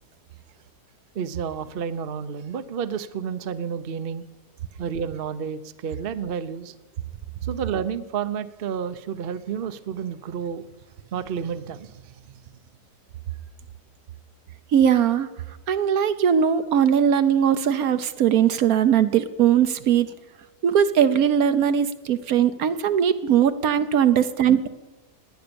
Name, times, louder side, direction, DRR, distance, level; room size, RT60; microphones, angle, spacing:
voice 1, 1.1-4.3 4.8-6.7 7.4-10.6 11.1-12.4, right 7 dB, 45° right, 11 dB, 0.8 m, -30 dB
voice 2, 14.7-15.3 15.7-20.1 20.6-24.7, right 8 dB, 70° right, 11 dB, 1.2 m, -20 dB
18.5 x 10.0 x 6.9 m, 1.2 s
omnidirectional pair, 1.7 m